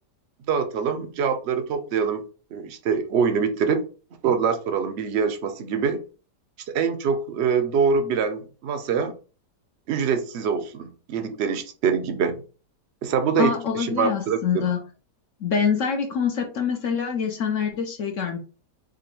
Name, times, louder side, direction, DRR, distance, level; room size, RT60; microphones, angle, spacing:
voice 1, 0.5-2.2 2.5-3.8 4.2-6.0 6.7-9.1 9.9-12.4 13.0-14.6, right 6 dB, 60° right, 0.7 m, -24 dB
voice 2, 13.4-14.8 15.4-18.4, left 6 dB, 60° left, 0.9 m, -25 dB
5.0 x 2.3 x 4.4 m
omnidirectional pair, 1.8 m